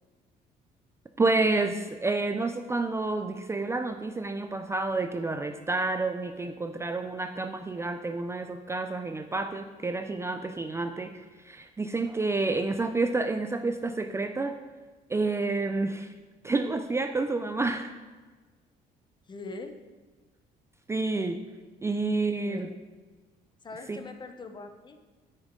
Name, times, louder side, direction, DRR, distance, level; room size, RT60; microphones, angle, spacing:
voice 1, 1.2-14.6 15.1-16.1 16.4-17.9 20.9-21.4 21.8-22.7 23.9-24.0, right 3 dB, 15° right, 6 dB, 0.4 m, -29 dB
voice 2, 19.3-19.7 22.4-22.8 23.6-25.0, left 3 dB, 25° left, 7 dB, 0.8 m, -42 dB
9.9 x 6.3 x 3.7 m, 1.3 s
cardioid pair, 110°, 17 cm